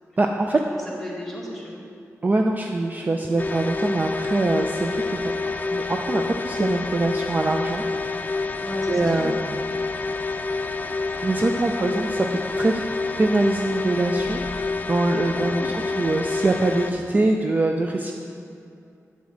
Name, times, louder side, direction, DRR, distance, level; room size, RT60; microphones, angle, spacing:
voice 1, 0.2-0.6 2.2-5.3 5.7-8.5 8.9-9.7 11.2-12.8 13.2-18.1, right 2 dB, 30° right, 2 dB, 0.4 m, -24 dB
voice 2, 0.7-1.8 3.2-3.3 8.6-9.3 15.2-15.8, equal, 5° left, -5 dB, 1.7 m, -36 dB
sound 1, 3.4-16.9, left 3 dB, 30° left, 0.4 m, -28 dB
8.6 x 7.0 x 3.8 m, 2.4 s
wide cardioid pair, 115°, 6 cm